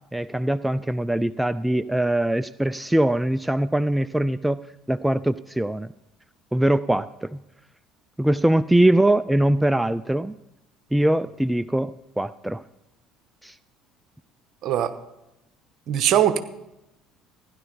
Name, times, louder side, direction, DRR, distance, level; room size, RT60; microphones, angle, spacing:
voice 1, 0.1-4.6 4.9-5.9 6.5-7.4 8.2-10.3 10.9-12.6 13.4-13.5, right 1 dB, 5° right, 16 dB, 0.3 m, -22 dB
voice 2, 14.6-14.9 15.9-16.4, right 10 dB, 55° right, 11 dB, 1.0 m, -20 dB
16.0 x 10.5 x 4.0 m, 0.90 s
hypercardioid pair, 60°, 0 cm